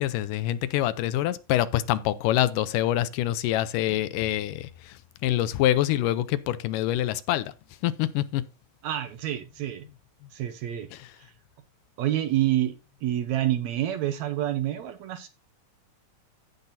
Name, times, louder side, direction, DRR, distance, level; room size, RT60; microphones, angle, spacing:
voice 1, 0.0-7.5 7.8-8.4 10.9-11.1, left 13 dB, 80° left, 2.2 m, -26 dB
voice 2, 8.8-9.8 10.3-10.9 12.0-12.7 13.0-15.3, right 13 dB, 70° right, 1.8 m, -27 dB
16.0 x 5.9 x 2.6 m
omnidirectional pair, 3.8 m